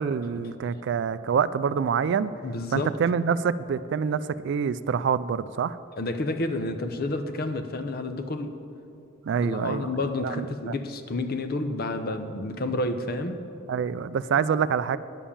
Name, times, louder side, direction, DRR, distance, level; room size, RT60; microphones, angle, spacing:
voice 1, 0.0-2.3 2.7-5.8 9.2-9.9 10.2-10.7 13.7-15.0, right 6 dB, 55° right, 16 dB, 0.3 m, -26 dB
voice 2, 2.4-2.9 6.0-8.5 9.4-13.4, left 2 dB, 45° left, 8 dB, 0.7 m, -30 dB
9.9 x 7.1 x 7.2 m, 2.7 s
head